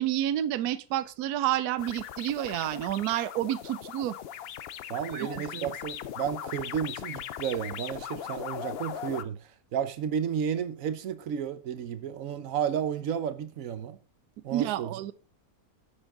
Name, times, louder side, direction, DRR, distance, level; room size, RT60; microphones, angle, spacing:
voice 1, 0.0-4.2 5.1-5.7 14.5-15.1, right 12 dB, 80° right, 1.1 m, -29 dB
sound 1, 1.8-9.2, left 10 dB, 80° left, 0.5 m, -39 dB
voice 2, 4.9-9.4 9.7-14.0 14.4-15.0, right 8 dB, 60° right, 1.2 m, -32 dB
9.8 x 7.2 x 3.7 m
omnidirectional pair, 1.7 m